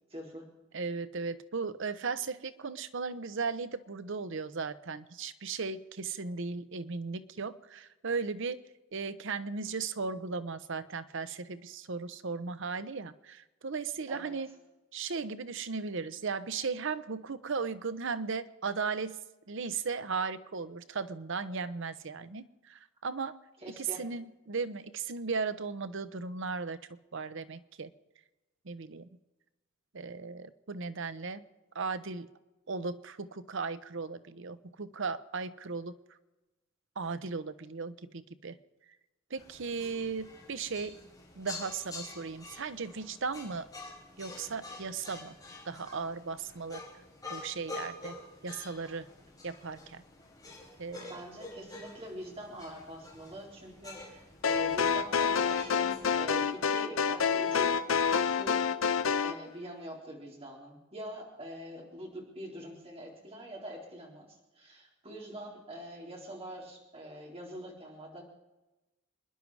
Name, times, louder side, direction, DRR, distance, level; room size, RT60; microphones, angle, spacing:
voice 1, 0.1-0.5 14.1-14.3 23.6-24.0 51.1-58.6 59.2-68.2, right 1 dB, 30° right, -2 dB, 3.9 m, -44 dB
voice 2, 0.7-8.6 8.9-14.5 14.9-19.2 19.5-23.3 23.7-27.9 28.6-29.1 29.9-31.4 31.7-32.3 32.7-36.0 37.0-38.6 39.3-41.0 41.4-43.7 44.2-45.3 45.7-46.8 47.3-48.2 48.4-49.1 49.4-50.0 50.8-51.1, right 4 dB, 65° right, 13 dB, 0.8 m, -36 dB
sound 1, 39.4-56.6, left 2 dB, 20° left, 5.0 m, -48 dB
sound 2, 54.4-59.4, left 6 dB, 70° left, 0.7 m, -28 dB
27.0 x 11.0 x 4.8 m, 1.1 s
head